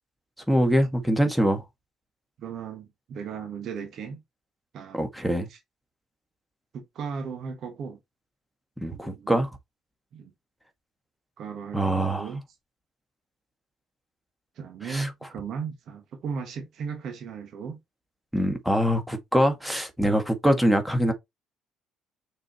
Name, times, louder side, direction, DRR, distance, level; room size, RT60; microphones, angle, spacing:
voice 1, 0.5-1.6 4.9-5.5 8.8-9.5 11.7-12.3 14.8-15.1 18.3-21.1, equal, ahead, 2.0 m, -23 dB
voice 2, 2.4-4.2 4.7-5.0 5.5-5.6 6.7-8.0 8.9-9.4 10.1-10.3 11.4-12.4 14.6-17.8, right 5 dB, 60° right, 1.5 m, -36 dB
6.2 x 4.7 x 3.2 m
hypercardioid pair, 50°, 0 cm